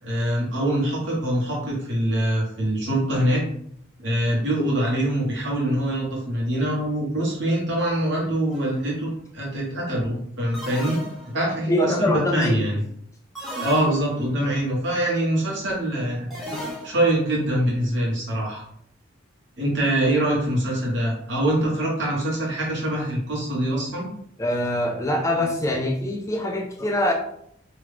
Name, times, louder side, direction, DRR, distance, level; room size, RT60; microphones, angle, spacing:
voice 1, 0.0-3.4 4.0-11.0 11.3-12.8 13.6-16.3 16.8-18.6 19.6-24.1, right 1 dB, 60° right, -4 dB, 1.2 m, -24 dB
sound 1, 8.5-8.9 10.5-11.6 13.3-14.4 16.3-17.2, equal, ahead, 0.8 m, -35 dB
voice 2, 11.7-12.7 24.4-27.1, left 1 dB, 15° left, 1 dB, 0.3 m, -23 dB
3.0 x 2.3 x 3.3 m, 0.69 s
head